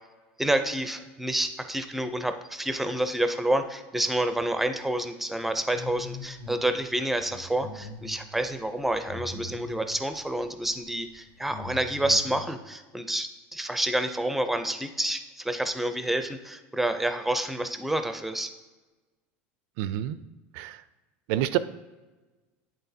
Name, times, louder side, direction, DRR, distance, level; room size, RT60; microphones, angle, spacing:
voice 1, 0.4-18.5, right 1 dB, 5° right, 8 dB, 0.4 m, -28 dB
sound 1, 5.7-6.6 7.0-10.0 10.7-10.8 11.2-12.4, left 3 dB, 65° left, 1.7 m, -41 dB
voice 2, 19.8-20.2 20.5-20.8 21.3-21.6, right 13 dB, 65° right, 15 dB, 0.4 m, -27 dB
10.0 x 3.7 x 2.7 m, 1.2 s
supercardioid pair, 140°, 6 cm